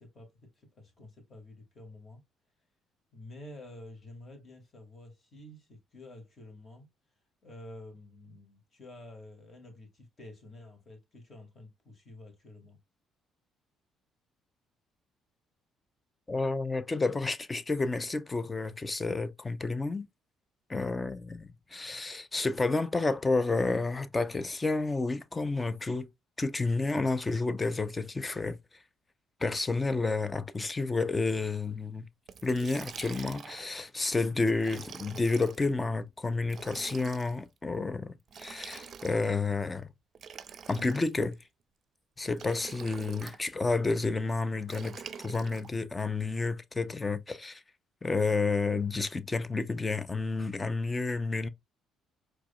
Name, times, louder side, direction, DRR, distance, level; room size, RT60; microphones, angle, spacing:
voice 1, 0.0-2.2 3.1-6.9 7.4-12.8, left 1 dB, 40° left, 2.2 m, -50 dB
voice 2, 16.3-20.1 20.7-26.1 26.4-28.6 29.4-32.0 32.4-39.9 40.7-41.4 42.2-45.0 45.2-47.6 48.0-51.5, left 3 dB, 20° left, 0.6 m, -30 dB
Liquid, 32.3-33.7 34.6-35.6 36.4-37.4 38.3-39.4 40.1-41.3 42.3-43.4 44.7-45.7, right 6 dB, 50° right, 0.5 m, -46 dB
4.7 x 3.1 x 2.3 m
supercardioid pair, 75°, 0 cm